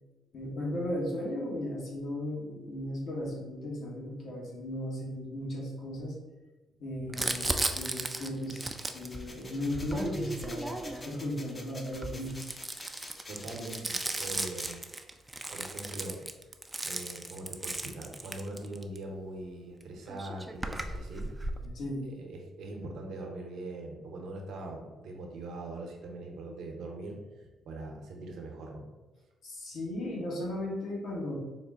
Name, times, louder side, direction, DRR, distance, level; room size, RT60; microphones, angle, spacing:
voice 1, 0.3-6.1 6.8-12.4 21.6-22.1 29.4-31.4, left 1 dB, 65° left, -3 dB, 1.2 m, -36 dB
voice 2, 7.0-7.7 13.3-14.8 15.5-16.2 16.8-21.3 22.1-28.8, right 2 dB, 75° right, 1 dB, 0.8 m, -42 dB
Crumpling crinkling, 7.1-11.2 11.9-19.0 19.8-19.9 20.1-21.7, right 2 dB, 15° right, 0.3 m, -36 dB
sound 1, 8.4-14.8, left 2 dB, 25° left, 0.6 m, -48 dB
4.1 x 2.1 x 3.5 m, 1.2 s
cardioid pair, 90°, 0 cm